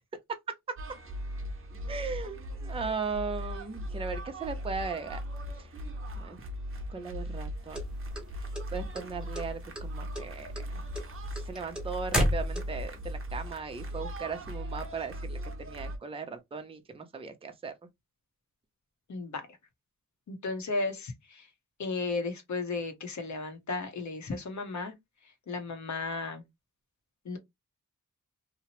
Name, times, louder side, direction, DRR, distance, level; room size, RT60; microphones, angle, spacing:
sound 1, 0.8-16.0, equal, 40° right, 0.7 m, -39 dB
voice 1, 1.9-5.2 5.6-5.7 6.2-6.4 6.9-7.8 8.4-10.8 11.4-17.7, right 5 dB, 20° right, 0.4 m, -38 dB
sound 2, 7.7-9.0 9.3-9.9 10.1-13.0, equal, 5° right, 0.9 m, -30 dB
voice 2, 19.1-19.5 20.3-21.5 21.8-24.9 25.5-26.4 27.2-27.4, left 3 dB, 60° left, 0.8 m, -34 dB
2.8 x 2.0 x 2.8 m
wide cardioid pair, 110°, 32 cm